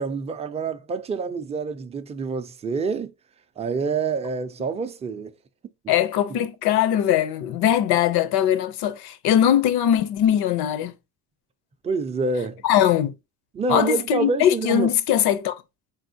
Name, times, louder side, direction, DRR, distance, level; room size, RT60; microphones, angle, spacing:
voice 1, 0.0-3.1 3.6-5.3 5.8-5.9 11.8-12.6 13.5-14.9, right 4 dB, 20° right, 0.4 m, -27 dB
voice 2, 5.9-10.9 12.6-13.1 13.7-15.5, left 10 dB, 85° left, 0.6 m, -21 dB
4.9 x 3.4 x 2.6 m
cardioid pair, 135°, 37 cm